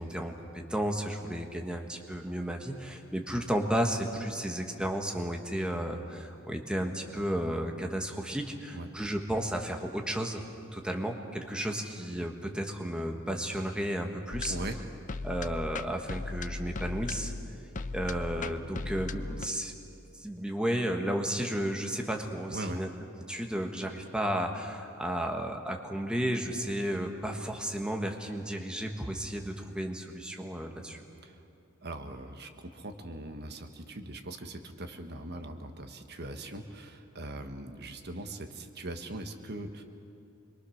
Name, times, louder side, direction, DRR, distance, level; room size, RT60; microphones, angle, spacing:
voice 1, 0.0-10.4 10.7-14.5 15.2-17.3 17.9-19.7 20.2-22.9 23.3-31.0, right 1 dB, 5° right, 3 dB, 1.5 m, -33 dB
sound 1, 14.3-19.5, left 3 dB, 40° left, 0.6 m, -37 dB
voice 2, 22.5-22.8 31.2-31.4 31.8-39.8, right 1 dB, 50° right, 6 dB, 1.4 m, -40 dB
26.5 x 22.5 x 6.5 m, 2.6 s
head